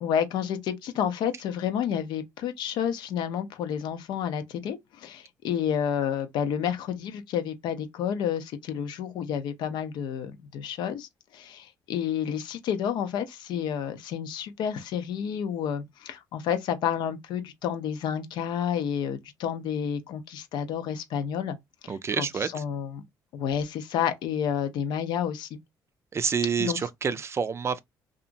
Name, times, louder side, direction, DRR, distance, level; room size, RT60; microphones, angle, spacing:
voice 1, 0.0-21.6 21.8-23.0 23.3-25.6 26.6-26.8, left 8 dB, 75° left, 0.6 m, -30 dB
voice 2, 21.9-22.6 26.1-27.8, right 6 dB, 35° right, 0.4 m, -28 dB
2.8 x 2.5 x 2.5 m
supercardioid pair, 80°, 8 cm